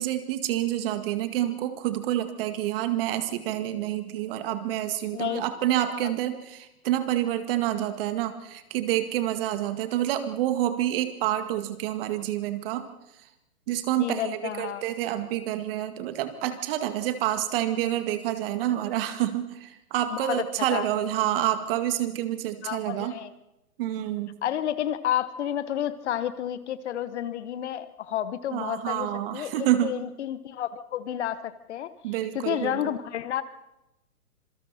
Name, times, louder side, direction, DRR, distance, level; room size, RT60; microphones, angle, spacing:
voice 1, 0.0-12.9 13.7-23.2 23.8-24.3 28.5-30.0 32.0-32.9, right 12 dB, 40° right, 9 dB, 2.0 m, -28 dB
voice 2, 14.0-14.8 20.1-20.4 20.7-20.8 22.6-23.3 24.4-29.1 29.3-31.9 32.3-33.4, left 11 dB, 50° left, 14 dB, 1.2 m, -30 dB
26.5 x 23.5 x 4.3 m, 0.92 s
hypercardioid pair, 130°, 44 cm